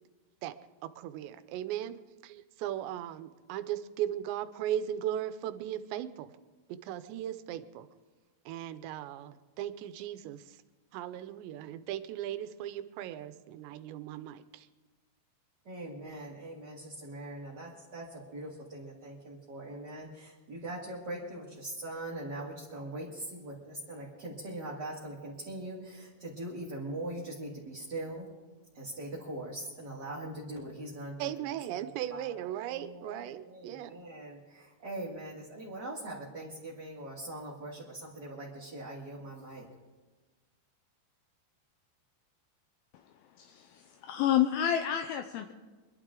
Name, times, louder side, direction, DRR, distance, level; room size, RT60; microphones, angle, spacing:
voice 1, 0.8-2.0 2.2-6.3 6.7-7.9 8.5-10.4 10.9-14.7 31.2-34.0, right 11 dB, 85° right, 11 dB, 3.0 m, -37 dB
voice 2, 15.6-28.3 28.7-39.7, right 1 dB, 30° right, -6 dB, 2.1 m, -42 dB
voice 3, 43.4-45.5, left 10 dB, 80° left, 6 dB, 2.4 m, -29 dB
25.0 x 12.0 x 3.8 m, 1.3 s
omnidirectional pair, 5.0 m